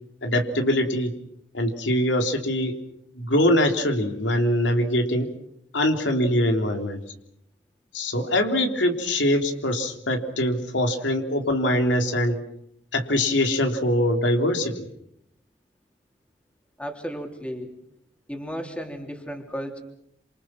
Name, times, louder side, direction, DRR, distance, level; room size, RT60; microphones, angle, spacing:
voice 1, 0.2-1.1 1.5-2.7 3.2-5.3 5.7-7.0 7.9-12.4 12.9-14.8, left 1 dB, 90° left, 4 dB, 3.5 m, -23 dB
voice 2, 16.8-17.7 18.3-19.8, equal, 5° left, 3 dB, 3.5 m, -34 dB
28.5 x 27.5 x 6.1 m, 0.75 s
head